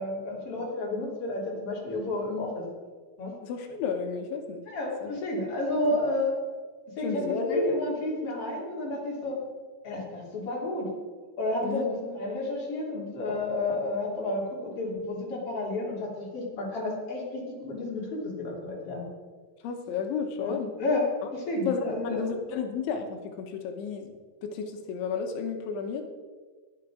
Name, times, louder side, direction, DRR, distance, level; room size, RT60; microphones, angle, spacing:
voice 1, 0.0-2.7 3.2-3.3 4.7-6.4 7.0-9.4 9.8-10.9 11.4-19.0 20.4-22.2 22.5-22.6, left 2 dB, 35° left, -3 dB, 3.5 m, -31 dB
voice 2, 3.4-4.6 5.0-5.1 7.0-7.7 11.6-11.8 19.6-20.7 21.6-26.0, left 5 dB, 75° left, 5 dB, 3.5 m, -32 dB
20.5 x 8.1 x 5.0 m, 1.5 s
omnidirectional pair, 5.6 m